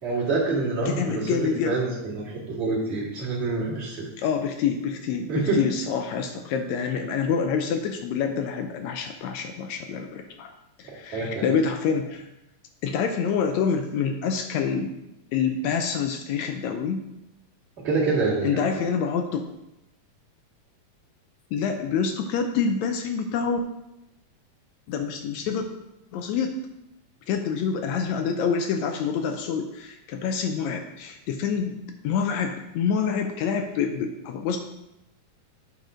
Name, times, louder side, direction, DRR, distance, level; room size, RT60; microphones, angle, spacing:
voice 1, 0.0-1.4 1.7-4.1 5.3-5.6 11.1-11.5 17.8-18.8, right 3 dB, 25° right, -6 dB, 2.2 m, -26 dB
voice 2, 0.9-1.8 4.2-10.5 10.8-12.3 12.8-14.9 15.3-17.0 18.4-19.4 21.5-23.6 24.9-25.7 26.1-26.5 27.3-31.8 32.0-34.6, left 6 dB, 80° left, 5 dB, 1.9 m, -27 dB
9.2 x 4.1 x 5.0 m, 0.88 s
omnidirectional pair, 3.3 m